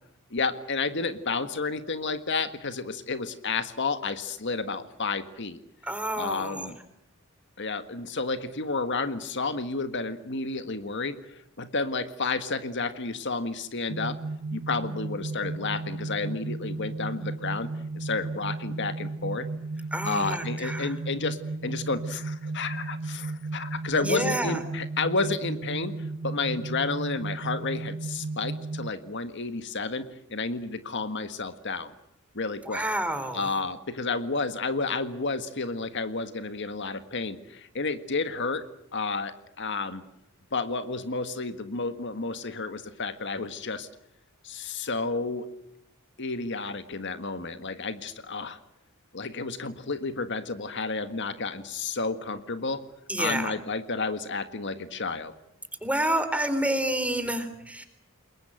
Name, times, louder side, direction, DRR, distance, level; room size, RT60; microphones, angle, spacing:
voice 1, 0.3-5.6 6.2-6.8 7.6-14.2 14.5-17.7 17.9-19.5 20.0-26.0 26.2-31.9 32.4-32.8 33.3-38.6 38.9-40.0 40.5-43.9 44.4-45.5 46.2-48.6 49.1-52.8 53.2-55.3, left 3 dB, 60° left, 10 dB, 1.7 m, -31 dB
voice 2, 5.8-6.7 19.9-20.9 24.0-24.6 32.7-33.5 53.1-53.5 55.8-57.8, right 1 dB, 5° right, 9 dB, 3.9 m, -29 dB
sound 1, 13.9-28.9, right 3 dB, 50° right, 0.9 m, -34 dB
29.0 x 22.0 x 7.9 m, 0.79 s
head